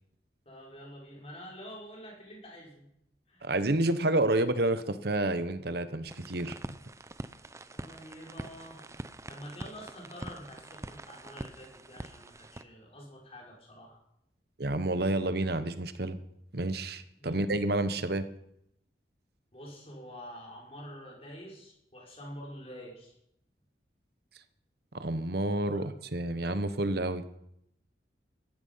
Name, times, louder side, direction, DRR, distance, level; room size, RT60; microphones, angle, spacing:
voice 1, 0.5-2.8 3.3-3.5 7.7-8.8 9.3-14.0 17.2-17.4 19.5-23.2 25.7-25.8, equal, 35° left, -3 dB, 5.9 m, -47 dB
voice 2, 3.4-6.6 14.6-16.2 16.5-18.2 24.9-27.4, right 2 dB, 60° right, 12 dB, 1.2 m, -29 dB
sound 1, 6.1-12.6, right 1 dB, 15° right, 0.6 m, -44 dB
17.5 x 14.0 x 5.7 m, 0.77 s
head